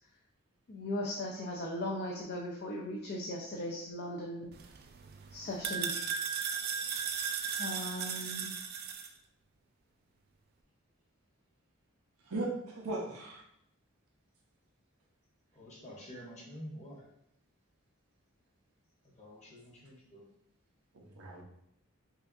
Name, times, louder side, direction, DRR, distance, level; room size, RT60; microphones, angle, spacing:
voice 1, 0.7-4.5 5.3-5.9 7.6-8.5, left 1 dB, 50° left, -1 dB, 0.5 m, -38 dB
sound 1, 4.5-9.1, right 7 dB, 45° right, 0.3 m, -36 dB
voice 2, 12.2-13.4 20.9-21.4, right 2 dB, 90° right, -2 dB, 0.8 m, -38 dB
voice 3, 15.5-17.0 19.0-20.2, equal, 30° left, -4 dB, 1.1 m, -48 dB
5.5 x 2.4 x 2.6 m, 0.75 s
head